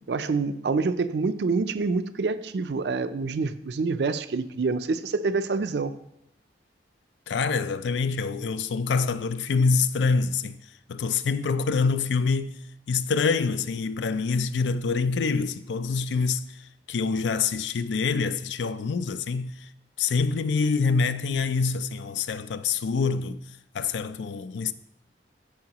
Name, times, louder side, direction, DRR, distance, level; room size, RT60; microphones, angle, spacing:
voice 1, 0.1-5.9, right 4 dB, 65° right, 0.4 m, -26 dB
voice 2, 7.3-10.6 10.9-12.5 12.9-19.7 20.0-23.4 23.7-24.7, left 4 dB, 80° left, 0.4 m, -26 dB
13.5 x 4.7 x 2.9 m
head